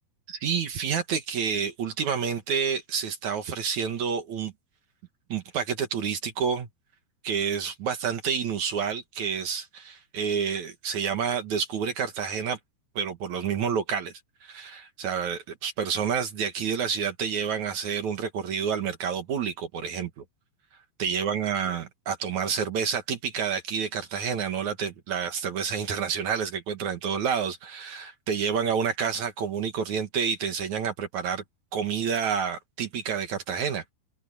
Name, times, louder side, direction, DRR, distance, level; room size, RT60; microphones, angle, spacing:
voice 1, 0.3-4.5 5.3-6.7 7.2-12.6 13.0-14.1 14.4-20.2 21.0-31.4 31.7-33.8, right 7 dB, 55° right, 2.4 m, -29 dB
open air
omnidirectional pair, 4.9 m